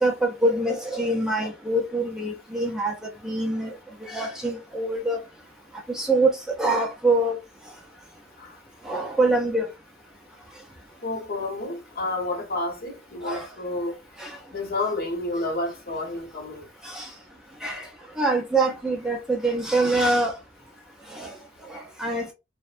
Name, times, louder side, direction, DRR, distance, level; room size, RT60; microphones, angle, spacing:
voice 1, 0.0-3.0 3.2-5.2 5.9-6.3 6.6-7.4 8.8-9.7 13.2-13.5 14.2-14.4 16.8-17.1 17.6-17.9 18.2-20.4 21.1-21.4 21.7-22.3, right 2 dB, 5° right, 0.4 m, -24 dB
voice 2, 11.0-14.0 14.5-16.6, left 2 dB, 50° left, 0.9 m, -30 dB
2.6 x 2.0 x 2.3 m
head